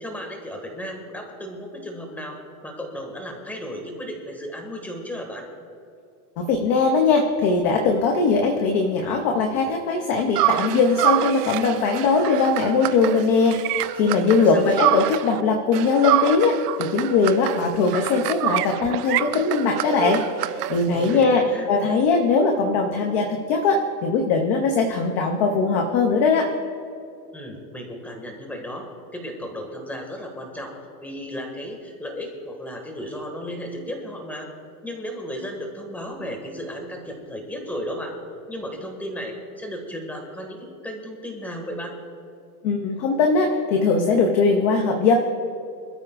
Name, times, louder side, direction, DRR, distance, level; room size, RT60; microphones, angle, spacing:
voice 1, 0.0-5.5 14.5-14.9 20.9-21.7 27.3-30.7 31.0-34.5 34.8-38.2 38.5-42.0, equal, 5° left, 2 dB, 1.7 m, -34 dB
voice 2, 6.4-26.5 42.6-45.1, left 4 dB, 20° left, 3 dB, 0.4 m, -20 dB
sound 1, 10.4-15.4 15.7-21.2, right 14 dB, 70° right, 0.7 m, -26 dB
25.5 x 13.0 x 2.4 m, 2.6 s
supercardioid pair, 160°, 49 cm